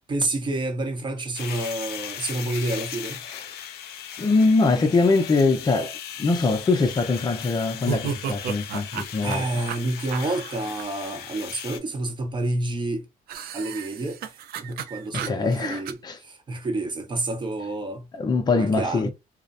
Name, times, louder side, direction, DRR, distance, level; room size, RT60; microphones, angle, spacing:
voice 1, 0.1-3.2 9.2-13.0 13.5-18.1 18.6-19.1, right 2 dB, 30° right, 0.8 m, -29 dB
sound 1, 1.3-11.8, left 9 dB, 70° left, 0.5 m, -38 dB
voice 2, 4.2-5.9 6.2-9.4 15.1-16.2 18.1-19.1, left 3 dB, 25° left, 0.6 m, -22 dB
sound 2, 7.8-10.8 13.3-15.9, right 8 dB, 65° right, 0.4 m, -33 dB
2.5 x 2.1 x 2.5 m
cardioid pair, 110°, 17 cm